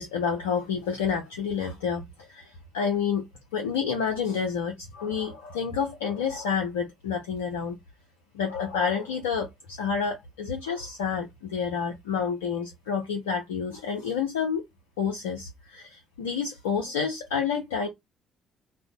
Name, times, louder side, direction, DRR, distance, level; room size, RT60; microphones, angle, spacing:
voice 1, 0.0-2.0 2.3-3.3 3.5-7.8 8.3-14.6 15.0-17.9, left 6 dB, 75° left, 0.4 m, -29 dB
2.5 x 2.0 x 2.5 m
figure-of-eight pair, 45°, 0 cm